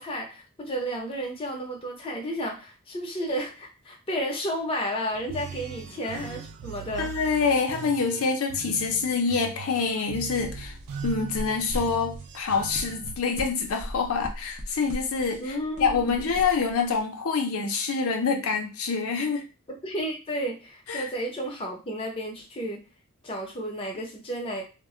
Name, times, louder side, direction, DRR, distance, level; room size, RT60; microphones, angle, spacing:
voice 1, 0.0-7.1 15.4-16.3 19.7-22.8 23.2-24.6, equal, 25° left, 0 dB, 0.7 m, -32 dB
sound 1, 5.1-13.2, right 7 dB, 85° right, 0.3 m, -40 dB
voice 2, 7.0-10.8 11.0-19.4 20.9-21.1, left 5 dB, 80° left, 3 dB, 0.5 m, -26 dB
sound 2, 10.4-17.0, equal, 35° right, 0.7 m, -39 dB
2.2 x 2.1 x 3.6 m, 0.33 s
head